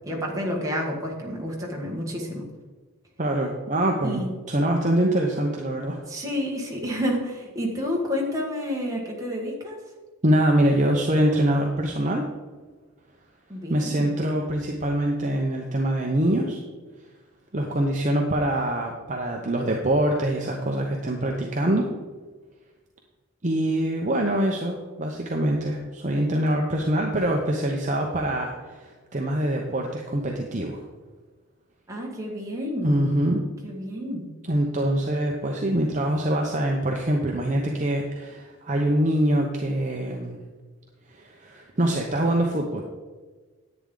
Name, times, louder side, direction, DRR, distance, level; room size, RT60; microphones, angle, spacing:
voice 1, 0.0-2.5 4.0-4.3 6.1-9.8 13.5-14.1 31.9-33.2 33.6-34.3, equal, 15° right, -2 dB, 1.7 m, -30 dB
voice 2, 3.2-4.2 4.5-6.0 10.2-12.2 13.7-16.6 17.5-21.9 23.4-30.8 32.8-33.4 34.5-40.4 41.1-42.8, right 1 dB, 35° right, 1 dB, 0.8 m, -24 dB
10.5 x 8.7 x 3.8 m, 1.4 s
head